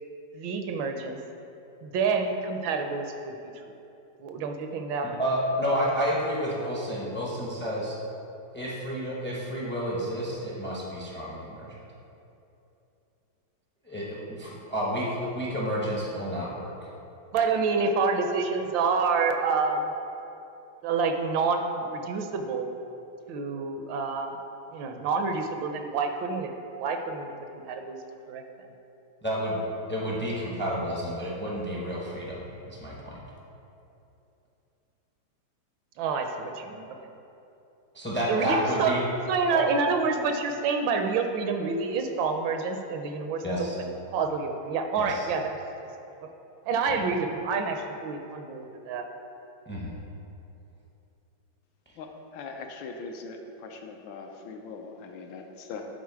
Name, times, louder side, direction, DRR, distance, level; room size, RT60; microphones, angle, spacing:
voice 1, 0.3-1.2 1.8-3.3 4.2-5.2 17.3-19.9 20.8-22.7 23.3-24.3 24.7-26.5 26.8-27.3 27.6-28.0 28.3-28.4 36.0-36.9 38.3-39.0 39.3-43.9 44.1-45.6 46.7-49.0, right 4 dB, 75° right, 5 dB, 1.3 m, -28 dB
voice 2, 5.2-8.0 8.5-11.8 13.8-16.7 29.2-29.6 29.9-33.2 37.9-39.0 39.5-39.6 43.4-43.8 45.0-45.3 46.9-47.0 49.7-50.0, equal, 15° left, -4 dB, 0.3 m, -30 dB
voice 3, 52.0-55.9, left 4 dB, 80° left, 3 dB, 1.4 m, -41 dB
9.4 x 3.9 x 4.7 m, 2.8 s
omnidirectional pair, 2.2 m